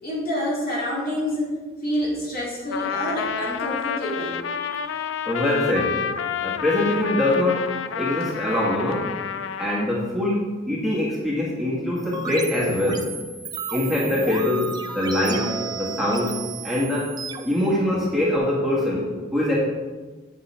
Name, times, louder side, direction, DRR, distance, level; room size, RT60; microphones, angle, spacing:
voice 1, 0.0-1.5 1.8-5.1, equal, 50° left, -5 dB, 2.8 m, -28 dB
Trumpet, 2.7-9.9, left 7 dB, 75° left, 0.4 m, -29 dB
voice 2, 5.2-6.0 6.4-9.1 9.6-13.1 13.7-16.4 16.6-17.1 17.4-19.6, left 1 dB, ahead, -7 dB, 1.7 m, -23 dB
sound 1, 12.0-18.4, right 4 dB, 20° right, 0.5 m, -33 dB
8.1 x 8.0 x 3.4 m, 1.3 s
head